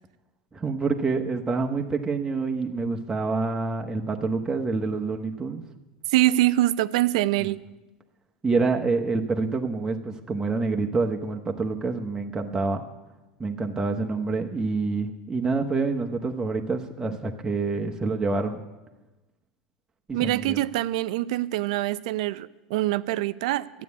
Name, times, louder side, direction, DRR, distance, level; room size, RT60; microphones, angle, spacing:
voice 1, 0.5-5.6 7.4-7.5 8.4-12.8 13.4-18.6 20.1-20.6, right 3 dB, 15° right, 2 dB, 1.1 m, -27 dB
voice 2, 6.1-7.6 20.1-23.8, right 16 dB, 65° right, 16 dB, 0.5 m, -24 dB
12.5 x 8.4 x 8.4 m, 1.1 s
hypercardioid pair, 90°, 4 cm